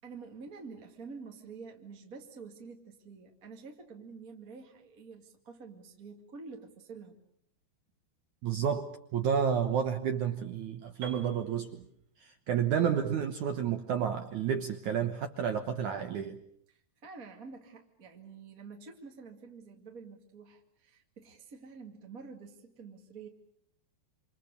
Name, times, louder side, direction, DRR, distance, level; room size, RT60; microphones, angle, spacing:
voice 1, 0.0-7.2 16.7-23.3, right 4 dB, 30° right, 2 dB, 1.7 m, -48 dB
voice 2, 8.4-11.8 12.2-16.4, right 8 dB, 70° right, 7 dB, 1.9 m, -31 dB
Piano, 11.0-14.9, right 5 dB, 50° right, 4.5 m, -52 dB
28.0 x 27.0 x 6.7 m, 0.68 s
omnidirectional pair, 5.1 m